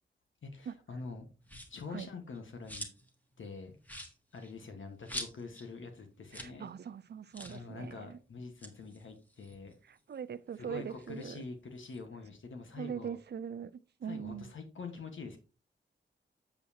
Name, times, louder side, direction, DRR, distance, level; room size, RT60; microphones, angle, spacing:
voice 1, 0.4-1.3 1.7-2.9 3.4-3.8 4.3-6.7 7.5-9.7 10.6-13.2 14.0-15.4, left 4 dB, 80° left, 1.6 m, -45 dB
sound 1, 1.4-1.9 2.3-3.1 3.4-3.5 3.8-5.7 6.0-6.1 6.3-6.6 6.8-6.9 7.3-7.6 8.4-10.1 10.5-12.0, equal, 10° left, 1.4 m, -46 dB
voice 2, 6.3-8.2 9.9-11.4 12.8-13.7 14.0-14.5, right 7 dB, 55° right, 0.5 m, -41 dB
7.8 x 7.2 x 2.9 m
wide cardioid pair, 145°, 20 cm